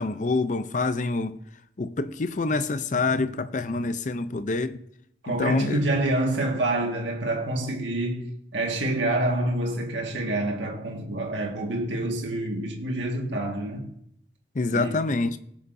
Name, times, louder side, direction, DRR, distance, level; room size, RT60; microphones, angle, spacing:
voice 1, 0.0-1.4 1.8-4.8 5.3-5.8 14.5-15.4, left 3 dB, 45° left, 0.5 m, -26 dB
voice 2, 5.2-13.9 14.7-14.9, right 1 dB, 85° right, 1.7 m, -27 dB
18.5 x 6.8 x 2.6 m
head